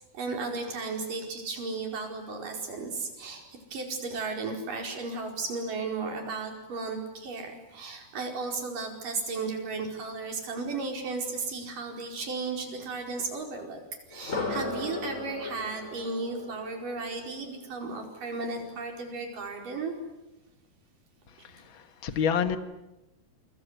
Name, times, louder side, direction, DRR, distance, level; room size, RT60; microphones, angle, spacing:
voice 1, 0.1-3.4 3.7-13.8 14.1-19.9 21.4-21.5, right 3 dB, 55° right, 3 dB, 6.3 m, -34 dB
sound 1, 14.1-18.1, left 3 dB, 20° left, 3.1 m, -37 dB
voice 2, 21.4-22.6, left 7 dB, 60° left, 10 dB, 1.3 m, -28 dB
28.5 x 25.5 x 8.2 m, 0.97 s
omnidirectional pair, 4.5 m